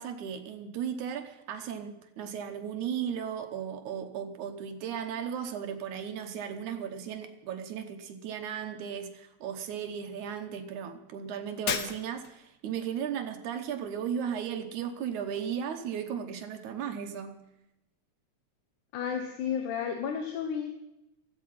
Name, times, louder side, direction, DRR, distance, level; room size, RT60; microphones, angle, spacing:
voice 1, 0.0-17.4, right 8 dB, 80° right, 7 dB, 2.5 m, -36 dB
Shatter, 11.7-12.5, left 7 dB, 70° left, 1.0 m, -33 dB
voice 2, 18.9-20.7, left 7 dB, 90° left, 5 dB, 2.6 m, -32 dB
16.0 x 13.5 x 5.7 m, 0.91 s
omnidirectional pair, 3.4 m